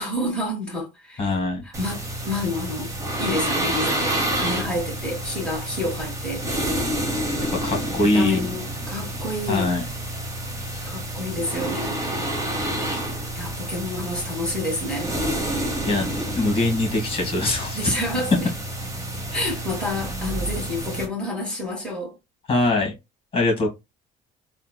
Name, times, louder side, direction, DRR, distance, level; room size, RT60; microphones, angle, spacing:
voice 1, 0.0-1.3 1.6-2.9 3.2-6.5 8.0-9.7 10.9-12.0 13.3-15.2 17.7-18.5 19.3-22.1, left 1 dB, 5° left, 1.9 m, -29 dB
voice 2, 1.2-1.6 7.5-8.5 9.5-9.8 10.7-10.9 15.9-16.1 16.4-17.9 22.5-22.9 23.3-23.7, left 2 dB, 35° left, 1.9 m, -22 dB
sound 1, 1.7-21.1, right 1 dB, 20° right, 1.0 m, -29 dB
3.6 x 2.5 x 2.3 m
cardioid pair, 110°, 17 cm